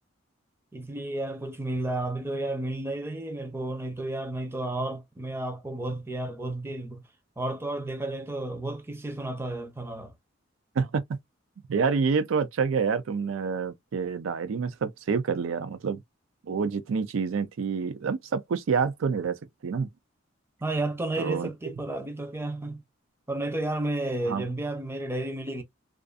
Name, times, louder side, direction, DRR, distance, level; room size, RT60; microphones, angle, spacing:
voice 1, 0.7-7.0 7.4-10.1 20.6-22.8 23.3-25.6, right 2 dB, 10° right, 0.5 m, -32 dB
voice 2, 10.8-11.2 11.7-16.0 16.4-19.4 19.6-19.9 21.2-21.5 24.3-24.5, right 5 dB, 85° right, 0.4 m, -27 dB
2.5 x 2.4 x 2.3 m
head